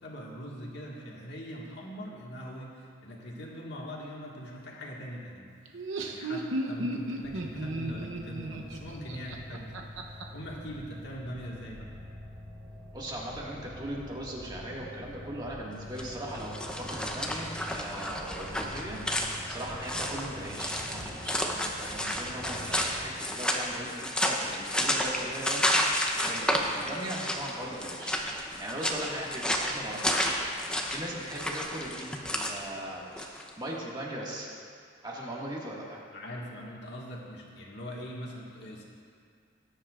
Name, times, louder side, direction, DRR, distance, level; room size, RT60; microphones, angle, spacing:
voice 1, 0.0-11.9 26.8-26.9 36.1-38.8, equal, 60° left, -3 dB, 1.8 m, -42 dB
Laughter, 5.7-10.2, right 1 dB, 90° right, 0.9 m, -34 dB
sound 1, 7.2-23.1, left 1 dB, 50° right, 2.6 m, -46 dB
voice 2, 12.9-19.0 19.5-25.7 26.2-30.4 30.9-34.5 35.0-36.0, right 1 dB, 20° right, -4 dB, 1.8 m, -39 dB
sound 2, 15.9-33.5, equal, 5° left, 0.8 m, -31 dB
19.5 x 10.0 x 2.5 m, 2.2 s
head